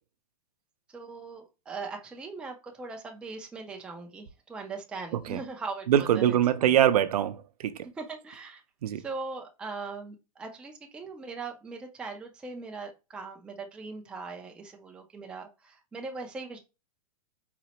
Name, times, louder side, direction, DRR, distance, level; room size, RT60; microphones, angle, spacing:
voice 1, 0.9-6.7 8.0-8.6 9.0-16.6, right 4 dB, 5° right, 0.3 m, -40 dB
voice 2, 5.9-7.9 8.8-9.0, right 10 dB, 85° right, 0.5 m, -24 dB
4.0 x 2.0 x 2.8 m
hypercardioid pair, 150°, 19 cm